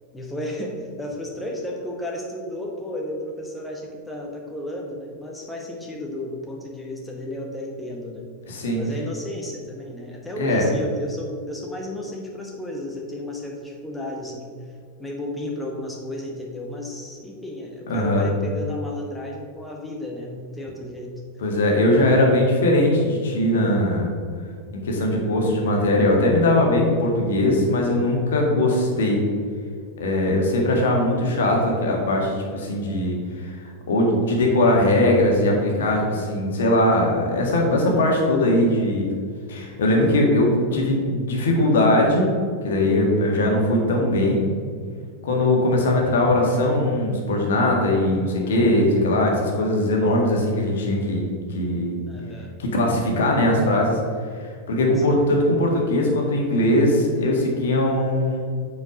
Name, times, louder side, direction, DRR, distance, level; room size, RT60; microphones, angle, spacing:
voice 1, 0.1-8.3 8.8-14.5 15.0-21.1 52.1-52.9 55.0-55.2, left 1 dB, 5° left, -1 dB, 1.1 m, -33 dB
voice 2, 8.5-8.8 10.4-10.7 17.9-18.3 21.4-24.1 24.7-29.2 30.0-33.6 33.9-39.1 39.5-42.3 42.6-44.5 45.2-52.0 52.6-54.0 54.4-58.4, left 1 dB, 60° left, 0 dB, 1.6 m, -20 dB
8.2 x 4.8 x 5.0 m, 2.1 s
figure-of-eight pair, 90°, 0 cm